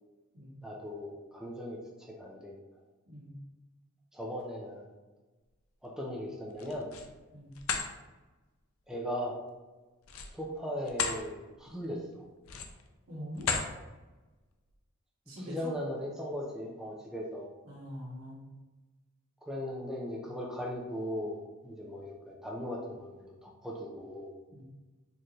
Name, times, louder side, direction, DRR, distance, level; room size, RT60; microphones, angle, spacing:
voice 1, 0.6-2.5 4.1-4.9 5.8-6.9 8.9-9.4 10.3-12.3 15.4-17.5 19.4-24.3, equal, 5° right, -2 dB, 0.4 m, -38 dB
voice 2, 3.1-3.4 7.3-7.6 13.1-13.5 15.3-15.7 17.6-18.4 24.5-24.6, equal, 75° right, -5 dB, 1.4 m, -43 dB
sound 1, 6.5-7.1 7.5-7.9 10.0-11.2 11.7-11.8 12.4-12.9 13.4-13.7, left 5 dB, 75° left, 0.5 m, -34 dB
4.3 x 2.6 x 3.1 m, 1.2 s
head